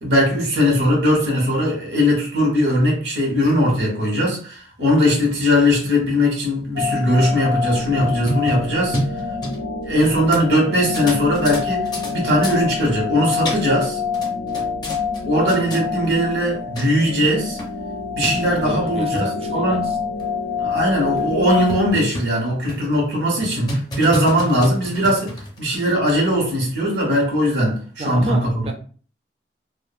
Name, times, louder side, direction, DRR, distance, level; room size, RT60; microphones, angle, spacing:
voice 1, 0.0-9.0 9.8-14.0 15.2-17.6 18.2-19.9 20.6-25.3 25.6-28.5, equal, 80° right, 1.2 m, -19 dB
sound 1, 6.8-21.9, left 5 dB, 80° left, 0.3 m, -26 dB
sound 2, 7.8-10.1 10.3-10.4 10.9-12.1 12.4-12.6 13.2-13.9 14.1-15.2 15.5-15.8 16.5-16.6 16.8-16.9 17.2-17.3 17.6-17.7 18.2-18.3 18.9-19.3 19.8-19.9 20.2-20.3 20.8-20.9 21.2-21.3 21.7-22.4 22.7-22.9 23.4-25.6, equal, 25° left, 0.5 m, -28 dB
voice 2, 18.5-19.8 28.0-28.7, right 2 dB, 35° right, 0.4 m, -31 dB
2.5 x 2.4 x 2.4 m
head